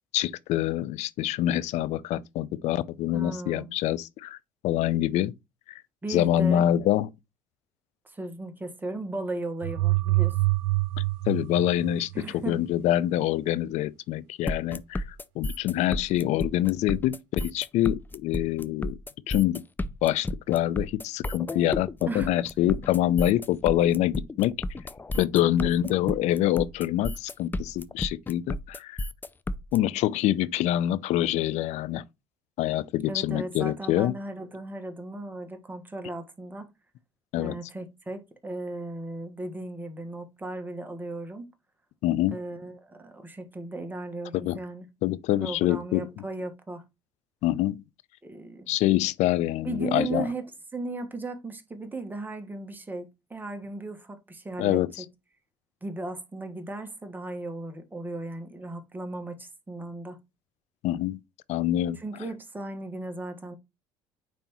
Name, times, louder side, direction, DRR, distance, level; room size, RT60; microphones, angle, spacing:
voice 1, 0.1-4.4 4.6-5.3 5.7-5.8 6.1-7.1 11.3-12.1 12.5-15.0 15.4-19.0 19.3-19.6 20.0-24.5 25.2-29.0 29.7-32.0 32.6-34.1 37.3-37.6 42.0-42.4 44.4-44.6 45.0-46.1 47.4-47.8 48.7-50.2 54.6-55.0 60.8-61.2 61.5-62.0, left 13 dB, 65° left, 0.5 m, -25 dB
voice 2, 3.1-3.7 6.0-6.7 8.0-10.3 12.1-12.6 22.1-22.3 33.1-36.7 37.4-41.5 42.3-44.8 45.4-46.8 48.2-48.7 49.6-54.8 55.8-60.2 62.0-63.5, right 2 dB, 15° right, 1.4 m, -36 dB
sound 1, 9.6-12.5, right 20 dB, 80° right, 0.4 m, -26 dB
sound 2, 14.5-29.8, left 1 dB, 15° left, 0.5 m, -32 dB
9.0 x 3.5 x 3.0 m
supercardioid pair, 85°, 13 cm